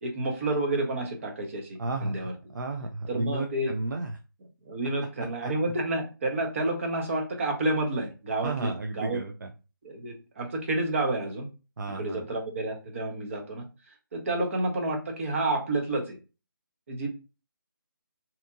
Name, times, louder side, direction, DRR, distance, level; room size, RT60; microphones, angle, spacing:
voice 1, 0.0-2.3 3.1-3.7 4.6-9.2 9.8-11.5 11.9-13.7 14.1-16.2 16.9-17.1, right 2 dB, 35° right, 1 dB, 0.8 m, -30 dB
voice 2, 1.8-4.2 5.4-5.5 8.4-9.5 11.8-12.3, right 2 dB, 60° right, 3 dB, 0.4 m, -33 dB
2.8 x 2.5 x 2.3 m, 0.31 s
figure-of-eight pair, 160°, 12 cm